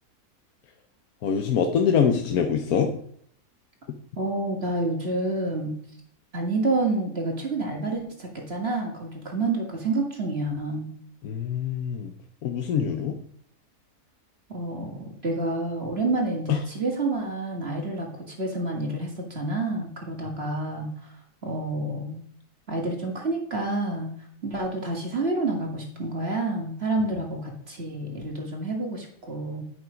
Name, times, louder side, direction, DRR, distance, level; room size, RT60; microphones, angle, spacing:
voice 1, 1.2-2.9 11.2-12.1 12.4-13.2 16.5-16.6, left 7 dB, 70° left, 5 dB, 1.3 m, -24 dB
voice 2, 4.2-5.8 6.3-10.9 14.5-21.1 21.4-22.2 22.7-24.1 24.4-29.6, right 2 dB, 40° right, 0 dB, 2.2 m, -28 dB
11.0 x 6.0 x 5.1 m, 0.64 s
omnidirectional pair, 1.7 m